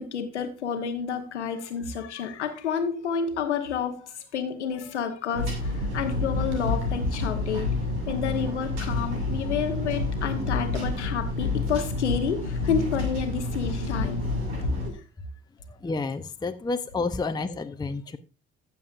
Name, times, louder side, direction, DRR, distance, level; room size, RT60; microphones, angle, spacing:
voice 1, 0.0-7.7 8.1-14.2 14.6-15.0 17.2-17.3, left 6 dB, 85° left, 7 dB, 1.1 m, -30 dB
sound 1, 5.3-14.9, left 2 dB, 80° right, 2.5 m, -29 dB
voice 2, 15.8-18.2, left 3 dB, 10° left, 8 dB, 0.7 m, -30 dB
15.0 x 7.0 x 2.5 m, 0.32 s
hypercardioid pair, 50°, 34 cm